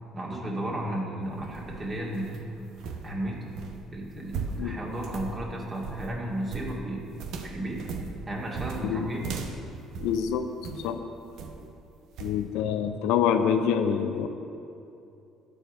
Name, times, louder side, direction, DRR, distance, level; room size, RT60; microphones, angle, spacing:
voice 1, 0.1-2.4 3.0-3.4 3.9-7.1 7.4-7.8 8.3-9.2, right 1 dB, 30° right, -2 dB, 2.4 m, -33 dB
sound 1, 1.2-10.9 11.4-11.7 12.2-12.4, right 4 dB, 60° right, 0.8 m, -38 dB
voice 2, 10.0-11.0 12.2-14.3, left 8 dB, 65° left, 8 dB, 0.5 m, -26 dB
11.5 x 5.0 x 7.9 m, 2.7 s
figure-of-eight pair, 50°, 0 cm